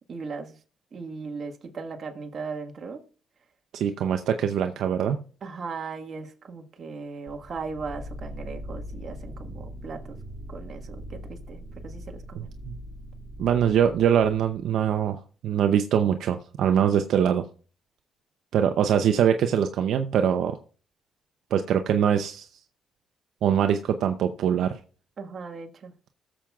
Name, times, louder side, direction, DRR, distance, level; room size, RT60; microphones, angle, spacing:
voice 1, 0.1-0.6 0.9-3.0 5.4-10.2 10.5-12.5 25.2-25.9, right 4 dB, 50° right, 1.5 m, -38 dB
voice 2, 3.7-5.2 12.3-12.8 13.4-17.4 18.5-20.6 21.5-22.5 23.4-24.8, right 8 dB, 75° right, 0.6 m, -23 dB
sound 1, 7.3-15.1, equal, 15° right, 2.4 m, -41 dB
21.0 x 7.3 x 2.4 m
cardioid pair, 90°, 0 cm